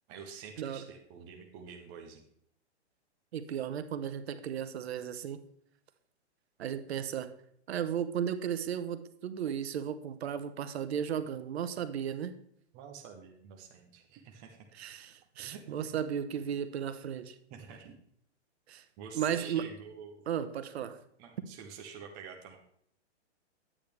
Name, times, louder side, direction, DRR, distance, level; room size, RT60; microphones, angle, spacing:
voice 1, 0.1-2.3 12.7-14.7 15.4-16.0 17.5-18.0 19.0-20.3 21.2-22.6, right 6 dB, 15° right, 2 dB, 0.4 m, -48 dB
voice 2, 3.3-5.4 6.6-7.3 7.7-12.3 14.7-17.3 18.7-18.8 19.1-19.6 20.3-21.0, right 8 dB, 65° right, 11 dB, 1.0 m, -35 dB
9.9 x 8.8 x 3.3 m, 0.67 s
hypercardioid pair, 160°, 34 cm